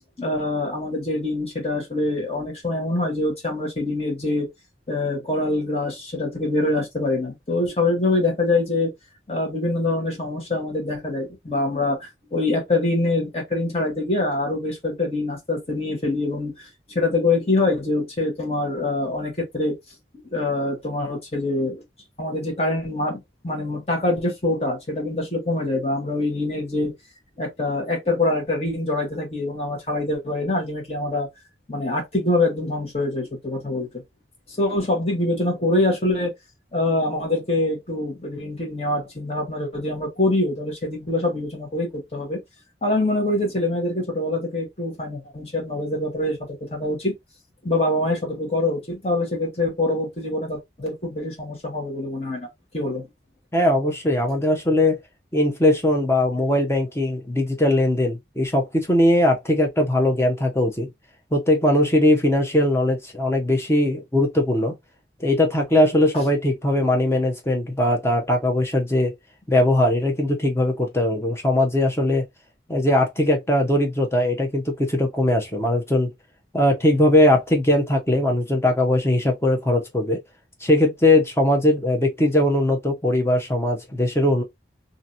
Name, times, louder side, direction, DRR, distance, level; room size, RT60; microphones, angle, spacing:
voice 1, 0.2-4.5 4.9-8.9 9.3-16.5 16.9-19.8 20.3-21.8 22.2-26.9 27.4-31.3 31.7-33.9 34.6-36.3 36.7-42.4 42.8-47.1 47.6-52.5 52.7-53.1, left 2 dB, 35° left, 1.2 m, -24 dB
voice 2, 53.5-55.0 55.3-60.9 61.3-64.8 65.2-69.1 69.5-72.2 72.7-76.1 76.5-80.2 80.6-84.4, left 1 dB, 15° left, 0.7 m, -20 dB
2.8 x 2.6 x 2.5 m
head